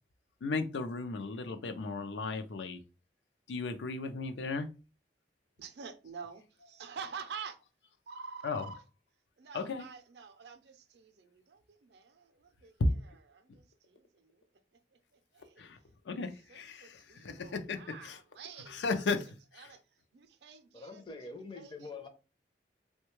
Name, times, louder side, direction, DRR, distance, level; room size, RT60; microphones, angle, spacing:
voice 1, 0.4-2.8 3.5-4.7 8.4-8.7 9.5-9.9 12.8-13.0 15.6-15.8 16.1-18.2 18.7-19.7, left 3 dB, 85° left, 0.4 m, -35 dB
voice 2, 5.6-7.6 8.1-8.8 9.4-12.8 13.3-14.4 14.9-15.7 16.1-16.2 16.5-19.0 19.6-19.8 20.1-21.9, right 6 dB, 65° right, 0.4 m, -48 dB
voice 3, 20.7-22.1, left 3 dB, 30° left, 0.5 m, -45 dB
3.5 x 2.2 x 3.0 m
head